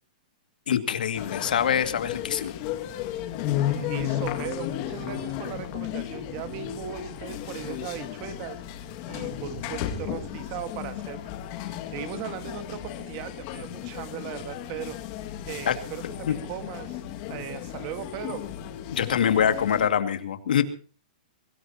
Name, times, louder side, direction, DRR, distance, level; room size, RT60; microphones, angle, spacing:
voice 1, 0.7-2.5 15.7-15.8 16.3-16.4 18.9-20.6, left 8 dB, 80° left, 9 dB, 2.3 m, -24 dB
sound 1, 1.1-19.9, left 11 dB, 30° left, 2.2 m, -34 dB
voice 2, 3.7-8.6 9.1-11.3 11.9-15.0 15.4-17.0 17.3-18.4, right 10 dB, 30° right, 11 dB, 1.7 m, -38 dB
23.5 x 18.0 x 2.9 m, 0.40 s
hypercardioid pair, 175°, 5 cm